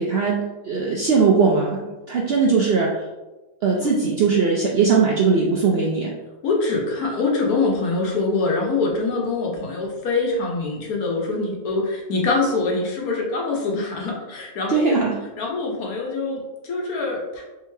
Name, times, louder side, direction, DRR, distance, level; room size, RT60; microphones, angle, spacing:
voice 1, 0.0-3.0 3.6-6.1 14.7-15.2, right 5 dB, 70° right, -2 dB, 0.6 m, -20 dB
voice 2, 6.4-15.0 15.4-17.4, left 3 dB, 75° left, -1 dB, 1.3 m, -24 dB
3.5 x 3.2 x 3.2 m, 1.1 s
omnidirectional pair, 1.6 m